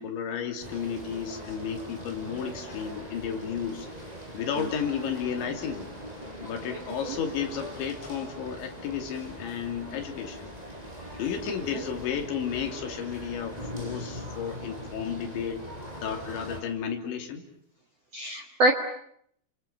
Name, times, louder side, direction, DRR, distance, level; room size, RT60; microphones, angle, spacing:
voice 1, 0.0-3.9 4.3-5.9 6.4-10.5 11.2-15.6 16.0-17.4, left 7 dB, 65° left, 4 dB, 5.1 m, -33 dB
sound 1, 0.6-16.6, equal, 10° right, 5.4 m, -41 dB
voice 2, 6.7-7.2 11.5-11.8 18.1-18.7, right 2 dB, 65° right, 4 dB, 1.6 m, -27 dB
30.0 x 26.0 x 7.0 m, 0.68 s
omnidirectional pair, 5.7 m